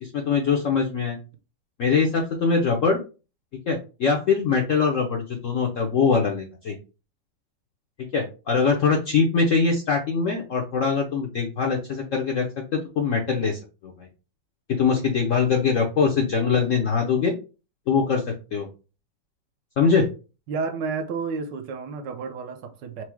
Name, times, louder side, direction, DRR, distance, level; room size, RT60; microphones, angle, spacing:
voice 1, 0.0-1.2 1.8-3.0 3.7-6.8 8.1-14.1 14.7-17.3 17.9-18.7 19.8-20.1, left 5 dB, 70° left, 0.7 m, -23 dB
voice 2, 20.5-23.0, right 4 dB, 75° right, 1.3 m, -31 dB
4.6 x 2.0 x 4.4 m
omnidirectional pair, 2.1 m